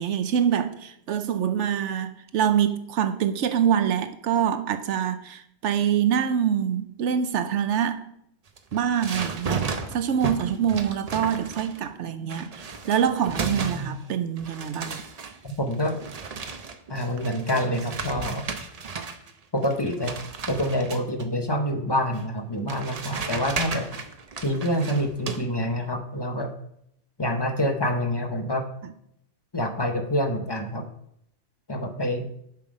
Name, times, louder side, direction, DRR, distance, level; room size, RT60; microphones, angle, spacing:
voice 1, 0.0-8.1 8.7-15.0, right 8 dB, 75° right, 0.9 m, -25 dB
sound 1, 8.5-11.9 12.3-14.1 14.4-19.3 19.6-21.2 22.1-22.2 22.7-25.4, right 5 dB, 40° right, 0.6 m, -34 dB
voice 2, 13.4-14.0 15.4-16.0 16.9-18.5 19.5-20.1 20.5-23.9 24.4-26.5 27.2-28.6 29.5-30.9 31.7-32.2, equal, 25° left, 0.8 m, -27 dB
7.4 x 5.7 x 4.9 m
omnidirectional pair, 1.2 m